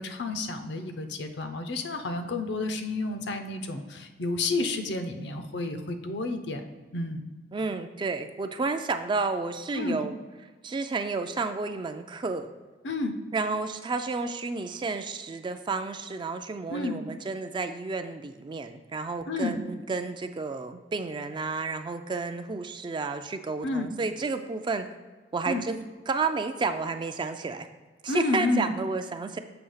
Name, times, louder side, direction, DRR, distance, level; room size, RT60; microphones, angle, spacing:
voice 1, 0.0-6.6 6.9-7.3 9.7-10.1 12.8-13.2 16.7-17.0 19.3-19.6 23.6-23.9 25.5-25.6 28.1-28.7, left 2 dB, 70° left, 7 dB, 0.6 m, -30 dB
voice 2, 7.5-10.1 10.6-12.5 13.3-24.9 25.3-25.8 26.1-27.7 28.0-29.4, right 4 dB, 25° right, 8 dB, 0.3 m, -31 dB
6.9 x 2.8 x 5.6 m, 1.3 s
head